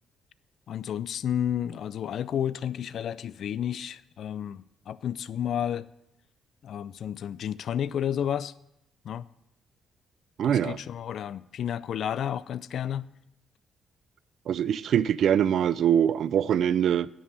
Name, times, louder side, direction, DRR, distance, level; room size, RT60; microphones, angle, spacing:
voice 1, 0.7-5.9 6.6-8.5 9.1-9.2 10.4-13.1, left 9 dB, 65° left, 0.3 m, -31 dB
voice 2, 10.4-10.8 14.5-17.1, right 9 dB, 65° right, 0.3 m, -23 dB
9.9 x 5.5 x 6.5 m
cardioid pair, 90°, 0 cm